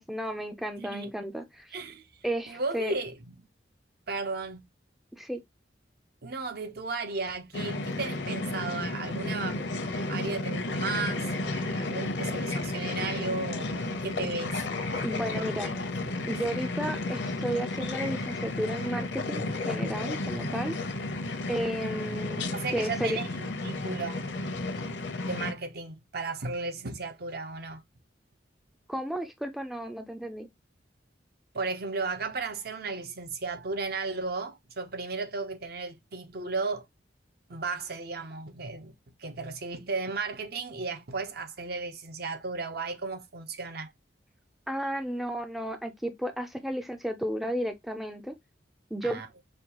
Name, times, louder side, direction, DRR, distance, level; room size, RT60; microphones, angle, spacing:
voice 1, 0.0-1.8 2.2-2.9 5.2-5.4 15.0-15.7 16.3-20.8 21.5-23.2 28.9-30.5 44.7-48.3 48.9-49.2, right 1 dB, ahead, 0.4 m, -33 dB
voice 2, 0.8-1.1 1.7-2.0 2.5-3.3 4.1-4.6 6.2-9.6 10.1-14.6 15.4-15.9 16.2-16.3 20.3-20.6 22.5-24.2 25.3-27.8 31.5-36.9 37.5-38.9 39.2-43.9 49.0-49.3, right 3 dB, 55° right, 0.7 m, -35 dB
sound 1, 7.5-25.5, left 2 dB, 70° left, 0.7 m, -32 dB
5.1 x 2.3 x 2.9 m
head